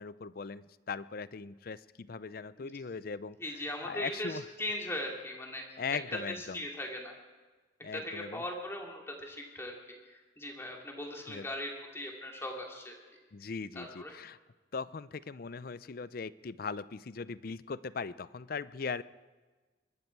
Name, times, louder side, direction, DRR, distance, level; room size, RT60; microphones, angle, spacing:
voice 1, 0.0-3.4 3.8-4.4 5.8-6.6 7.8-8.4 11.3-11.4 13.3-14.4 14.7-19.0, left 5 dB, 50° left, 17 dB, 0.5 m, -39 dB
voice 2, 3.4-5.8 6.4-7.1 7.9-13.0 13.4-13.5 13.7-14.1, left 1 dB, 15° left, 0 dB, 2.7 m, -39 dB
23.0 x 12.5 x 4.6 m, 1.3 s
head